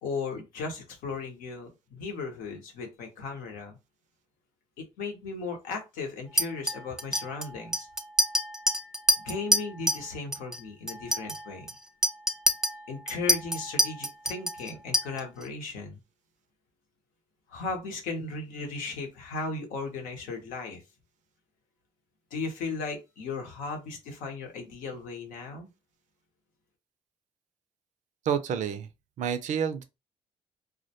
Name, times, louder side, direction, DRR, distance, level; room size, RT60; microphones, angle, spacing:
voice 1, 0.0-3.8 4.8-7.9 9.2-11.7 12.9-16.0 17.5-20.8 22.3-25.7, left 4 dB, 85° left, 0.8 m, -36 dB
Chink clink, 6.4-10.1 10.3-10.6 10.9-15.4, equal, 5° right, 0.4 m, -27 dB
voice 2, 28.3-28.9 29.2-29.8, right 8 dB, 65° right, 0.4 m, -28 dB
2.2 x 2.1 x 2.7 m
supercardioid pair, 65°, 14 cm